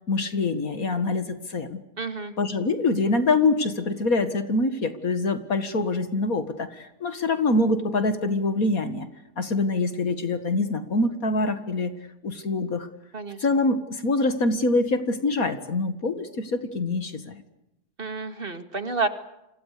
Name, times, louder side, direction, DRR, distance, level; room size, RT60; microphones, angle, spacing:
voice 1, 0.1-1.8 2.4-9.1 9.4-11.9 12.2-12.9 13.4-17.4, left 2 dB, 60° left, 10 dB, 2.3 m, -25 dB
voice 2, 2.0-2.3 13.1-13.4 18.0-19.1, right 4 dB, 35° right, 9 dB, 2.3 m, -29 dB
30.0 x 26.5 x 6.8 m, 0.89 s
omnidirectional pair, 1.7 m